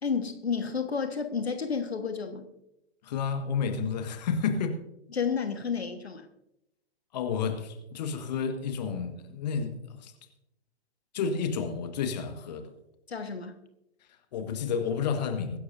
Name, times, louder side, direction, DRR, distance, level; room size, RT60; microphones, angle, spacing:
voice 1, 0.0-2.5 5.1-6.3 13.1-13.6, left 6 dB, 70° left, 7 dB, 1.5 m, -31 dB
voice 2, 3.0-4.8 7.1-10.1 11.1-12.7 14.0-15.6, left 6 dB, 40° left, 7 dB, 1.6 m, -31 dB
22.5 x 11.5 x 2.7 m, 0.85 s
figure-of-eight pair, 120°, 33 cm